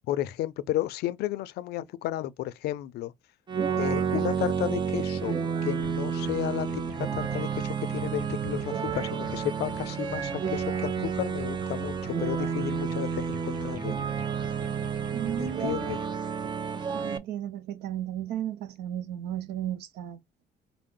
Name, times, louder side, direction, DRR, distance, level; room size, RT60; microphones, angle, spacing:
voice 1, 0.1-3.1 3.8-5.4 5.6-14.0 15.4-16.0, left 13 dB, 75° left, 0.4 m, -33 dB
sound 1, 3.5-17.2, right 7 dB, 25° right, 0.5 m, -30 dB
sound 2, 5.8-16.1, left 2 dB, 55° right, 1.4 m, -46 dB
voice 2, 15.1-15.8 16.9-20.2, right 11 dB, 80° right, 0.6 m, -34 dB
4.5 x 2.0 x 3.7 m
cardioid pair, 110°, 17 cm